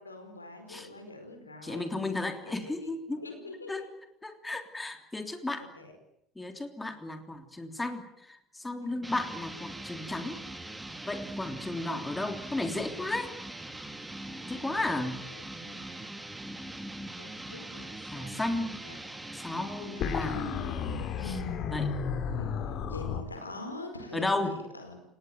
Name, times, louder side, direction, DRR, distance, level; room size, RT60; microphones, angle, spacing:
voice 1, 0.0-1.9 2.4-2.5 2.8-3.9 5.7-6.0 8.8-9.0 14.5-16.0 17.2-19.1 19.5-20.8 22.3-25.0, left 2 dB, 85° left, 6 dB, 4.7 m, -45 dB
voice 2, 1.6-3.2 3.7-3.9 4.2-5.7 6.3-10.4 11.0-13.3 14.4-15.2 18.1-18.8 19.3-20.4 21.2-21.9 24.1-24.6, left 2 dB, 10° left, 7 dB, 3.3 m, -34 dB
sound 1, 9.0-21.5, right 1 dB, 10° right, 2.9 m, -42 dB
sound 2, 20.0-23.2, left 6 dB, 50° left, 3.1 m, -32 dB
30.0 x 18.5 x 9.4 m, 0.75 s
figure-of-eight pair, 65°, 0 cm